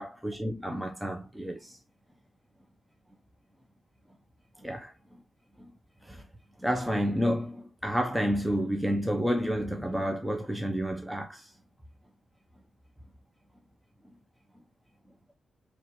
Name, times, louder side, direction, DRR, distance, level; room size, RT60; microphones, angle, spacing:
voice 1, 0.0-1.7 4.6-4.9 6.6-11.4, equal, 5° right, 0.6 m, -30 dB
4.2 x 3.1 x 3.0 m
cardioid pair, 105°, 0 cm